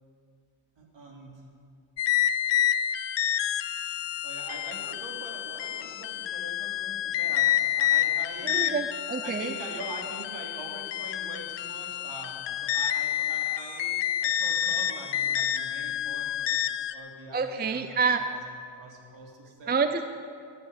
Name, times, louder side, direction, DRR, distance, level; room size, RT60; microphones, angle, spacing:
voice 1, 0.8-1.4 4.2-8.7 9.2-16.5 16.9-18.4 18.7-19.8, right 2 dB, 60° right, -1 dB, 3.2 m, -43 dB
sound 1, 2.0-16.9, left 11 dB, 60° left, 0.7 m, -29 dB
voice 2, 8.4-9.5 17.3-18.2 19.7-20.0, right 5 dB, 20° right, 8 dB, 0.5 m, -27 dB
13.0 x 8.5 x 9.7 m, 2.3 s
cardioid pair, 115°, 49 cm